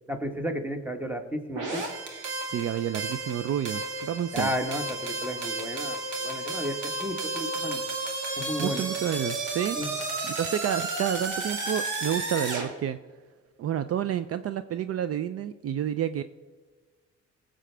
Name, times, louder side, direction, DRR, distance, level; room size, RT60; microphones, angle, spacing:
voice 1, 0.1-1.9 4.3-7.8 8.4-8.8 9.8-9.9, equal, 5° right, 6 dB, 1.2 m, -33 dB
sound 1, 1.5-12.7, right 2 dB, 80° right, 2.2 m, -32 dB
voice 2, 2.5-4.5 8.6-9.8 10.2-13.0 13.6-16.2, right 10 dB, 50° right, 12 dB, 0.4 m, -29 dB
17.0 x 7.7 x 3.4 m, 1.4 s
cardioid pair, 90°, 30 cm